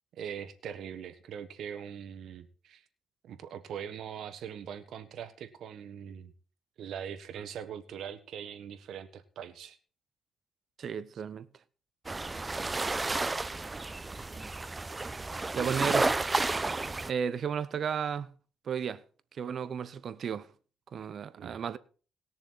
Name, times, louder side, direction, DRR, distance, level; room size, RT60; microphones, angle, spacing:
voice 1, 0.2-2.8 3.2-6.3 6.8-9.8 21.4-21.6, right 8 dB, 75° right, 1.5 m, -42 dB
voice 2, 10.8-11.5 12.4-12.6 15.3-16.1 17.1-18.3 18.7-19.0 19.4-20.5 20.9-21.8, right 7 dB, 55° right, 0.8 m, -33 dB
sound 1, 12.1-17.1, right 3 dB, 20° right, 0.6 m, -31 dB
20.5 x 6.9 x 4.1 m
cardioid pair, 90°, 0 cm